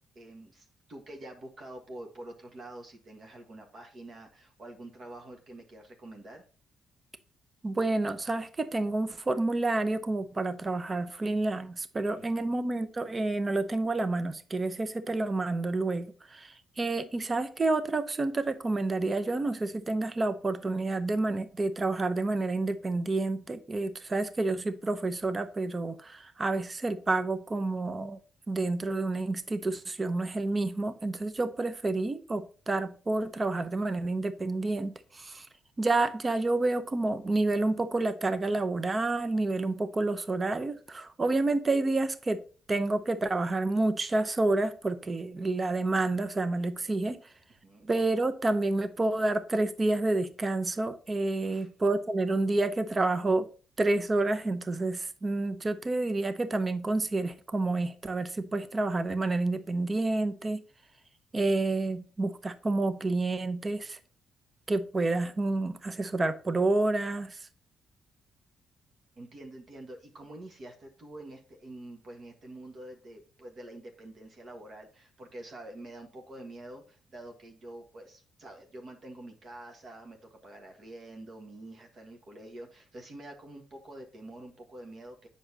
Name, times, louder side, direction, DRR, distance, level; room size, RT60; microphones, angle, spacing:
voice 1, 0.1-6.4 12.2-12.5 47.6-47.9 51.4-51.7 69.2-85.3, right 1 dB, 45° right, 3 dB, 1.5 m, -47 dB
voice 2, 7.6-28.2 28.5-35.5 35.8-42.4 42.7-47.2 47.9-53.5 53.8-60.6 61.3-64.0 64.7-67.4, right 2 dB, 30° right, 12 dB, 0.7 m, -29 dB
7.9 x 6.1 x 2.8 m, 0.39 s
cardioid pair, 90°, 0 cm